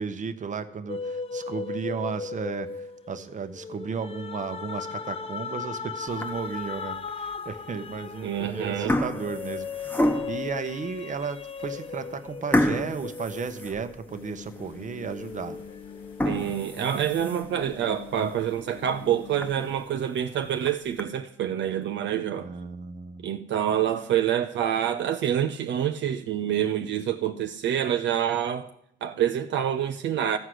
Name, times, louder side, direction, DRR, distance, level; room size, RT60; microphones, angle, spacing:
voice 1, 0.0-15.6 22.4-23.3, right 5 dB, 40° right, 1.0 m, -34 dB
sound 1, 0.9-14.6 15.1-16.7, left 5 dB, 30° left, 0.6 m, -37 dB
sound 2, 6.1-6.6 7.2-7.3 8.1-8.4 8.7-10.5 11.1-11.2 11.6-11.7 12.5-14.3 14.7-14.8 15.3-15.4 16.0-17.6 18.1-18.2 18.6-18.7 19.0-19.1 19.4-19.5 20.4-21.0, left 1 dB, 10° left, 1.1 m, -28 dB
voice 2, 8.2-9.0 16.2-22.5 23.2-28.7 29.0-30.4, right 10 dB, 70° right, 0.7 m, -27 dB
sound 3, 14.1-19.8, left 8 dB, 85° left, 1.3 m, -45 dB
14.5 x 4.9 x 7.8 m
cardioid pair, 90°, 20 cm